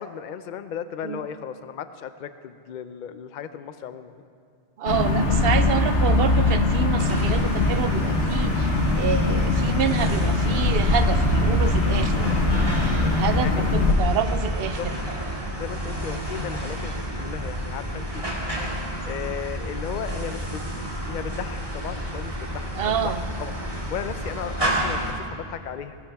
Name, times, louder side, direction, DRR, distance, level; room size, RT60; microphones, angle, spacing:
voice 1, 0.0-4.1 12.5-13.1 13.4-13.7 14.6-14.9 15.5-18.3 19.1-20.7 21.1-26.0, left 8 dB, 55° left, 11 dB, 0.5 m, -36 dB
voice 2, 4.8-12.3 12.8-14.8 22.8-23.2, right 7 dB, 60° right, 11 dB, 0.8 m, -28 dB
sound 1, 4.9-13.9, left 2 dB, 85° left, 1.5 m, -22 dB
sound 2, 7.0-25.1, right 1 dB, 30° right, 2.2 m, -30 dB
20.0 x 14.0 x 3.4 m, 2.3 s
omnidirectional pair, 1.2 m